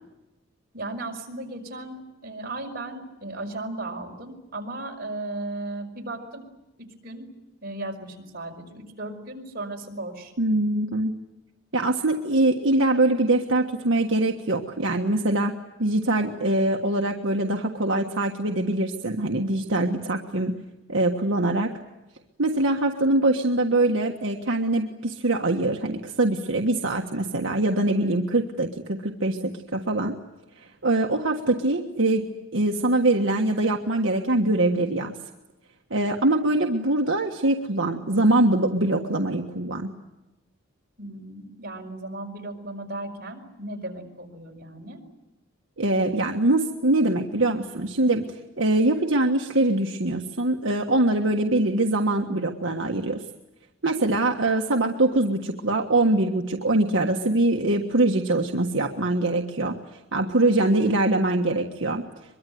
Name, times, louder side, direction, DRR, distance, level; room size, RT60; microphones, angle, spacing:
voice 1, 0.7-6.4 7.0-7.3 7.6-10.3 41.0-45.0, right 2 dB, 50° right, 1 dB, 5.3 m, -36 dB
voice 2, 10.4-11.2 11.7-15.5 15.8-20.5 20.9-21.7 22.4-30.1 30.8-32.3 32.5-35.1 35.9-39.9 45.8-53.2 53.8-59.8 60.1-62.0, right 2 dB, 75° right, 2 dB, 1.6 m, -23 dB
23.5 x 23.0 x 9.4 m, 1.0 s
head